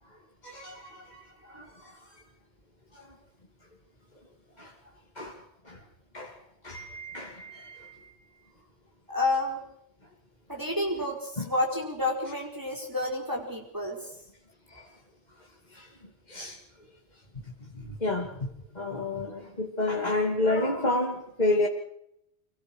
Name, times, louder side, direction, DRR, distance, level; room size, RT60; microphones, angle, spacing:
voice 1, 0.4-1.0 1.5-1.6 4.6-4.7 5.2-5.3 5.7-5.8 6.1-6.3 6.6-7.9 11.4-11.5 16.3-16.6 18.0-18.3 18.8-21.7, left 2 dB, 35° left, -1 dB, 2.8 m, -29 dB
voice 2, 9.1-9.6 10.5-14.0, left 2 dB, 15° right, -1 dB, 5.1 m, -30 dB
26.5 x 21.5 x 6.4 m, 0.77 s
omnidirectional pair, 1.2 m